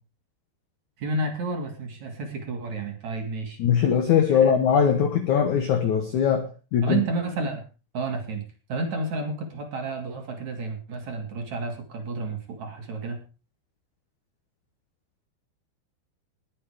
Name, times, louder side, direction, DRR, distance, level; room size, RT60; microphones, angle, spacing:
voice 1, 1.0-3.6 4.4-4.5 6.8-7.6 7.9-8.4 8.7-13.2, right 3 dB, 45° right, 4 dB, 3.5 m, -31 dB
voice 2, 3.6-7.0, left 7 dB, 70° left, 8 dB, 1.8 m, -21 dB
20.0 x 7.9 x 5.0 m, 0.33 s
omnidirectional pair, 5.3 m